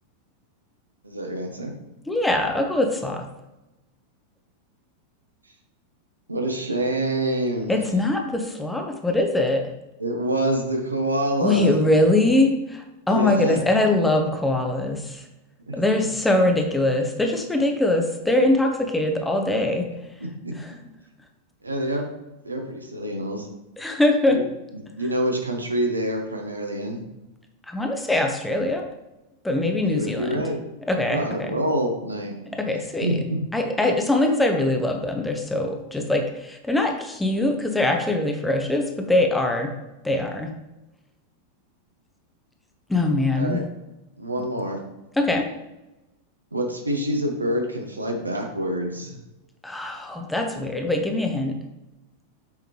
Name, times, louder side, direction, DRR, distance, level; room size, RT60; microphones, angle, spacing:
voice 1, 1.0-1.7 6.3-7.8 10.0-11.8 13.1-13.6 15.7-15.8 20.4-20.5 21.6-22.1 22.4-23.5 24.3-24.4 24.7-27.0 29.9-30.6 31.1-32.3 33.0-33.4 43.3-43.6 44.2-44.8 46.5-49.2, right 1 dB, 80° right, 2 dB, 1.0 m, -26 dB
voice 2, 2.1-3.3 7.7-9.6 11.4-15.2 15.7-19.9 20.6-20.7 23.8-24.4 27.7-28.8 29.4-30.5 30.9-31.5 32.5-33.2 33.5-39.7 40.0-40.5 42.9-43.6 45.2-45.5 49.6-51.6, left 2 dB, 5° left, 3 dB, 0.9 m, -22 dB
6.9 x 5.1 x 3.1 m, 0.99 s
figure-of-eight pair, 90°, 0 cm